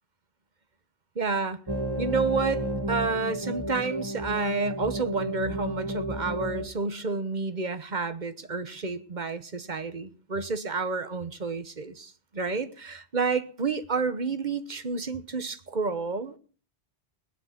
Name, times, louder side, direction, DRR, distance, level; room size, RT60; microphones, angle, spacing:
voice 1, 1.1-1.6 2.0-16.4, right 4 dB, 45° right, 1.3 m, -30 dB
sound 1, 1.7-6.7, right 1 dB, 20° right, 2.1 m, -32 dB
19.5 x 10.0 x 5.9 m
omnidirectional pair, 1.1 m